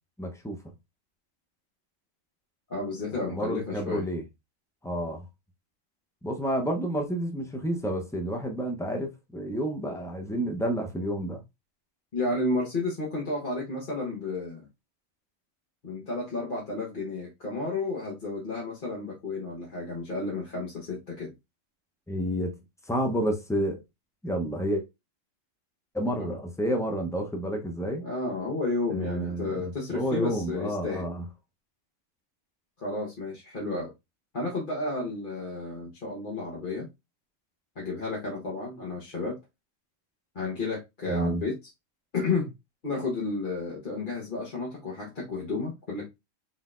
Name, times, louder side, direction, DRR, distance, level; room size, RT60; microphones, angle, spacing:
voice 1, 0.2-0.6 3.3-4.2 4.8-5.2 6.2-11.4 22.1-22.5 22.9-23.8 24.2-24.8 25.9-28.0 28.9-31.2 41.1-41.4, right 1 dB, 5° left, 0.5 m, -30 dB
voice 2, 2.7-4.1 12.1-14.7 15.8-21.3 26.2-26.3 28.0-31.1 32.8-33.9 34.3-36.9 37.8-39.4 40.3-41.6 42.1-42.5 42.8-46.1, left 3 dB, 40° left, 1.2 m, -32 dB
4.0 x 3.9 x 2.4 m
omnidirectional pair, 1.3 m